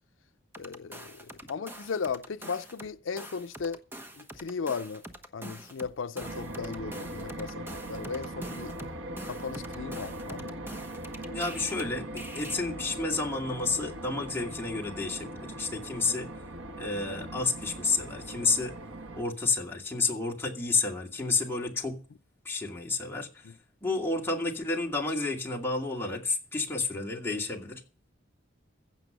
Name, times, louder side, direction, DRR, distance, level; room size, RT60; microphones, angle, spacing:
sound 1, 0.5-2.9 3.2-11.8 12.2-12.5, right 1 dB, 10° right, 1.1 m, -45 dB
voice 1, 0.6-3.8 4.2-5.0 5.3-8.7 9.2-10.5 23.4-23.5, left 5 dB, 80° left, 0.5 m, -36 dB
sound 2, 6.2-19.2, right 1 dB, 80° right, 1.3 m, -40 dB
voice 2, 11.3-16.3 16.8-18.7 19.1-22.0 22.5-23.3 23.8-27.8, left 3 dB, 10° left, 2.2 m, -30 dB
15.5 x 6.8 x 6.7 m
head